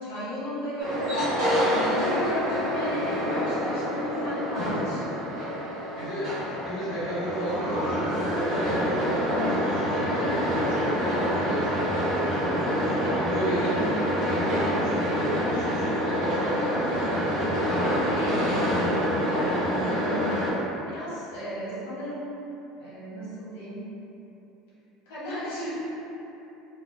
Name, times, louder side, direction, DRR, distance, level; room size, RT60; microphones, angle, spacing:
voice 1, 0.0-5.1 5.8-6.0 10.0-10.3 14.5-14.7 17.8-22.3 22.8-23.8 25.1-25.7, equal, 80° left, -10 dB, 1.2 m, -35 dB
sound 1, 0.8-20.5, equal, 45° right, 0.8 m, -26 dB
voice 2, 6.0-12.2 12.8-13.9 14.2-17.2, equal, 50° left, -13 dB, 0.8 m, -33 dB
3.5 x 2.1 x 2.6 m, 3.0 s
cardioid pair, 180°, 0 cm